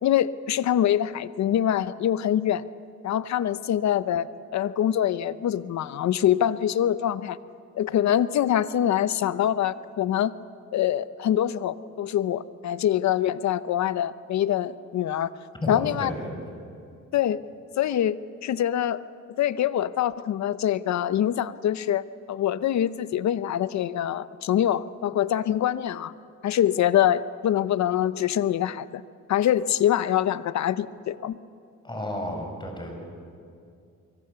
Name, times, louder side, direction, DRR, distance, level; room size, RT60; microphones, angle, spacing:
voice 1, 0.0-2.6 3.0-7.4 7.8-10.3 10.7-15.3 15.7-16.1 17.1-17.4 17.8-19.0 19.4-22.0 22.3-26.1 26.4-29.0 29.3-31.4, left 11 dB, 65° left, 15 dB, 0.8 m, -24 dB
voice 2, 15.6-16.3 31.8-32.9, left 1 dB, 15° left, 2 dB, 6.8 m, -32 dB
24.5 x 24.0 x 6.9 m, 2.4 s
cardioid pair, 90°, 30 cm